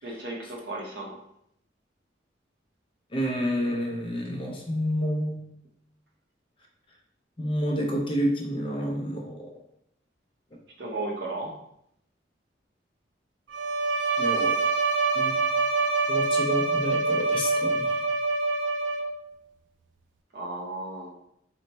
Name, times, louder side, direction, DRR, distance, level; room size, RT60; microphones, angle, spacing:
voice 1, 0.0-1.2 10.8-11.5 20.3-21.1, right 2 dB, 65° right, -2 dB, 0.8 m, -34 dB
voice 2, 3.1-5.5 7.4-9.5 14.2-14.6 15.1-15.4 16.1-18.0, equal, 30° left, 0 dB, 0.6 m, -29 dB
Bowed string instrument, 13.5-19.3, right 3 dB, 80° right, 0.3 m, -25 dB
3.1 x 2.1 x 4.0 m, 0.74 s
head